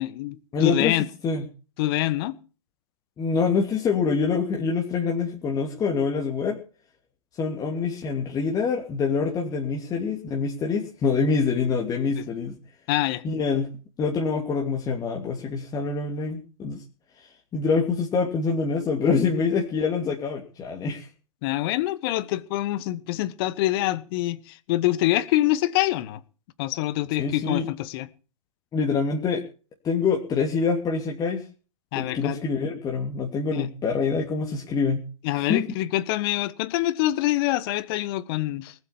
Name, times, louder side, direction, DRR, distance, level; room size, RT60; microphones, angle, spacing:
voice 1, 0.0-1.0 1.8-2.4 12.2-12.3 12.9-13.2 21.4-26.2 26.6-28.1 31.9-32.4 33.5-33.7 35.2-38.7, left 16 dB, 45° left, 1.4 m, -25 dB
voice 2, 0.5-1.0 1.2-1.4 3.2-6.6 7.4-12.5 13.2-13.7 14.0-16.8 17.2-21.1 27.2-27.7 28.7-29.4 29.8-31.4 31.9-35.0 35.4-35.7, left 5 dB, 20° left, 2.8 m, -25 dB
19.5 x 8.3 x 7.2 m
hypercardioid pair, 115°, 17 cm